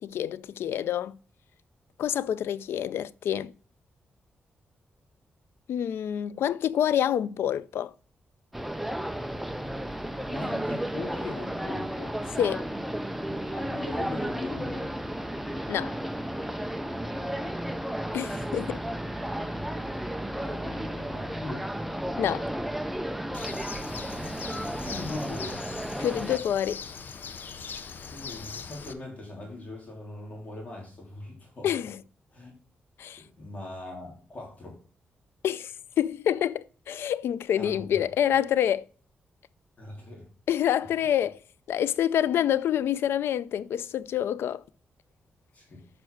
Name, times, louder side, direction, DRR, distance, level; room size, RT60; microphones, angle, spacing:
voice 1, 0.0-1.2 2.0-3.5 5.7-7.9 12.4-12.7 15.7-16.0 18.1-18.8 22.2-22.5 26.0-26.8 31.6-32.0 33.0-33.2 35.4-38.9 40.5-41.4 41.7-44.6, left 10 dB, 90° left, 0.4 m, -27 dB
sound 1, 8.5-26.4, right 1 dB, 5° right, 0.5 m, -33 dB
voice 2, 10.3-12.1 13.2-14.9 19.4-21.7 24.6-25.6 28.1-31.7 32.3-32.5 33.2-34.8 37.5-38.0 39.8-40.3 45.5-45.8, left 2 dB, 35° left, 3.2 m, -41 dB
Bird, 23.3-28.9, left 6 dB, 55° left, 0.7 m, -41 dB
6.7 x 5.3 x 4.6 m
wide cardioid pair, 130°, 4 cm